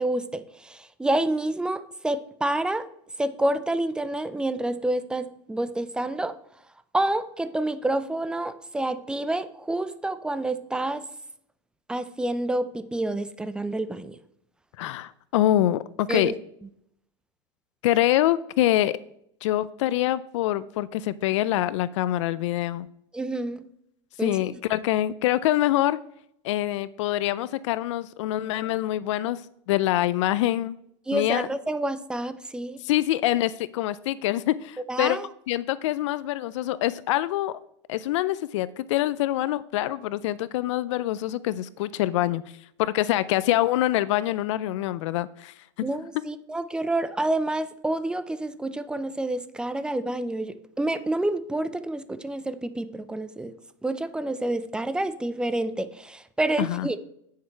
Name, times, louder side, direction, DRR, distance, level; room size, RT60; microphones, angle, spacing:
voice 1, 0.0-2.9 3.2-6.3 6.9-11.0 11.9-14.2 16.1-16.3 23.1-23.7 24.2-24.4 31.1-32.8 34.9-35.3 45.8-53.6 53.8-57.0, right 1 dB, 5° right, 13 dB, 0.5 m, -28 dB
voice 2, 14.8-16.3 17.8-18.9 19.4-22.9 24.2-26.0 26.4-29.4 29.7-30.8 31.1-31.5 32.8-35.2 35.5-37.6 37.9-42.4 42.8-45.5 56.6-56.9, left 14 dB, 75° left, 17 dB, 0.4 m, -25 dB
9.3 x 6.6 x 4.5 m, 0.72 s
supercardioid pair, 130°, 16 cm